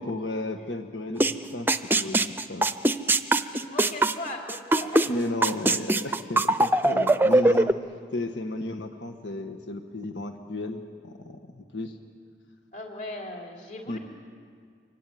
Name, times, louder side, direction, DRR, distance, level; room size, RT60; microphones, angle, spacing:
voice 1, 0.0-1.7 2.0-2.7 5.0-7.7 8.1-12.0 13.9-14.0, left 1 dB, 90° left, 5 dB, 1.6 m, -33 dB
sound 1, 1.2-1.3 1.7-5.1 5.4-7.7, right 2 dB, 10° right, 0.6 m, -21 dB
voice 2, 3.5-5.1 12.7-14.0, left 2 dB, 45° left, 1 dB, 3.6 m, -38 dB
24.5 x 24.0 x 9.4 m, 2.2 s
head